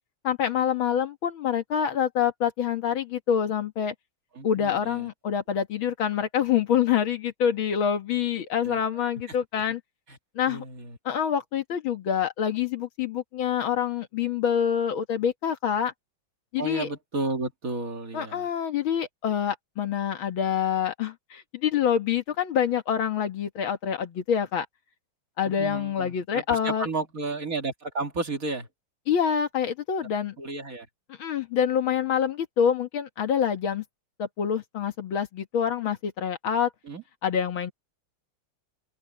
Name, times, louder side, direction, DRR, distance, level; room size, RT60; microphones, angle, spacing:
voice 1, 0.2-3.9 4.4-9.8 10.4-10.6 11.1-15.9 16.5-16.9 18.1-24.7 25.4-26.9 29.1-30.4 31.2-33.8 34.2-36.7 37.2-37.7, left 8 dB, 70° left, 2.3 m, -26 dB
voice 2, 4.4-5.1 8.6-8.8 9.5-9.6 10.1-10.2 10.5-11.0 16.6-18.5 25.4-28.7 30.4-30.9 36.9-37.0, right 3 dB, 40° right, 2.2 m, -33 dB
open air
omnidirectional pair, 2.3 m